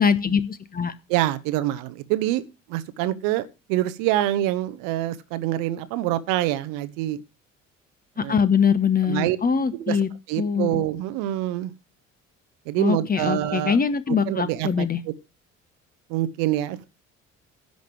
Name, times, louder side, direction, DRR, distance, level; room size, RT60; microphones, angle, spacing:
voice 1, 0.0-0.9 8.2-10.1 10.4-10.8 12.8-15.0, left 6 dB, 25° left, 1.0 m, -22 dB
voice 2, 1.1-2.4 2.7-7.2 8.2-8.3 9.1-9.4 9.7-10.0 10.3-11.7 12.7-13.8 14.3-15.1 16.1-16.9, right 14 dB, 60° right, 0.9 m, -25 dB
10.5 x 5.2 x 7.6 m
figure-of-eight pair, 50°, 37 cm